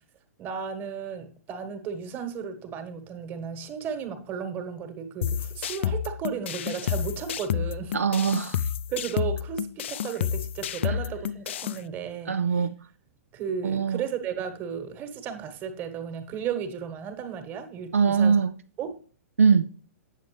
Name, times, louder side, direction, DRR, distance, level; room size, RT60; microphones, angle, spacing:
voice 1, 0.4-8.0 8.9-12.7 13.3-18.4 18.8-19.0, right 7 dB, 25° right, 8 dB, 1.4 m, -34 dB
sound 1, 5.2-11.8, left 9 dB, 50° left, 0.4 m, -30 dB
voice 2, 7.9-8.6 12.3-12.8 13.6-14.0 17.9-18.5 19.4-19.7, right 6 dB, 70° right, 9 dB, 0.5 m, -22 dB
9.0 x 7.1 x 3.2 m, 0.42 s
figure-of-eight pair, 110°, 8 cm